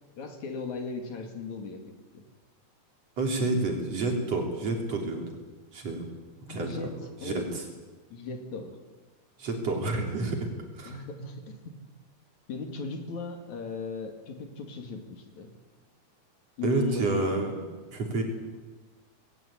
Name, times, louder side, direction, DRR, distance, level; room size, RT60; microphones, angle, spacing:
voice 1, 0.2-1.8 2.1-2.2 6.5-6.9 7.2-7.4 8.1-8.8 10.8-11.6 12.5-15.5 16.6-17.2, left 4 dB, 70° left, 5 dB, 3.7 m, -37 dB
voice 2, 3.2-5.3 5.7-6.1 6.5-6.7 7.2-7.6 9.4-10.5 10.7-11.0 16.6-17.5 17.9-18.2, right 3 dB, 55° right, 1 dB, 4.5 m, -29 dB
20.0 x 18.0 x 8.7 m, 1.3 s
omnidirectional pair, 3.5 m